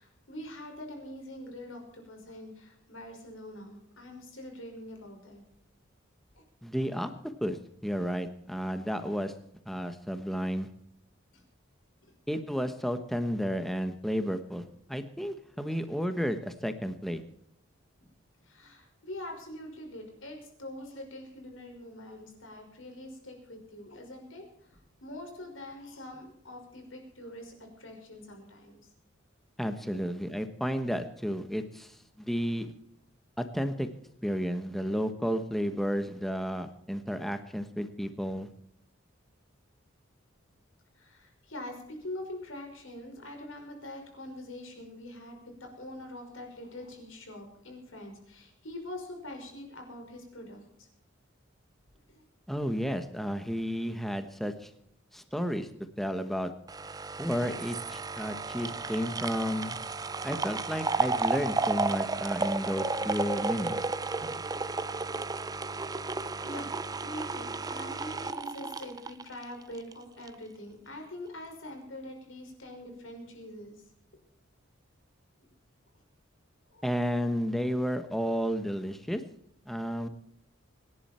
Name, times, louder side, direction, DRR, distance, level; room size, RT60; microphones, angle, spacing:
voice 1, 0.0-5.4 6.3-6.4 11.3-11.4 18.4-28.8 29.9-30.0 41.0-50.9 52.1-52.2 64.2-64.5 66.4-66.7 67.0-73.8 76.7-77.3 77.7-77.8, left 1 dB, 75° left, 3 dB, 5.4 m, -44 dB
voice 2, 6.6-7.1 7.4-7.6 7.8-9.3 9.6-10.7 12.3-17.2 29.6-32.7 33.4-33.9 34.2-38.5 52.5-54.7 55.1-55.7 56.0-56.5 57.2-59.8 60.2-63.8 76.8-79.2 79.7-80.1, equal, ahead, 8 dB, 1.1 m, -32 dB
sound 1, 56.7-69.9 70.3-70.4, right 3 dB, 20° right, 0.5 m, -33 dB
24.5 x 11.0 x 4.4 m, 0.73 s
head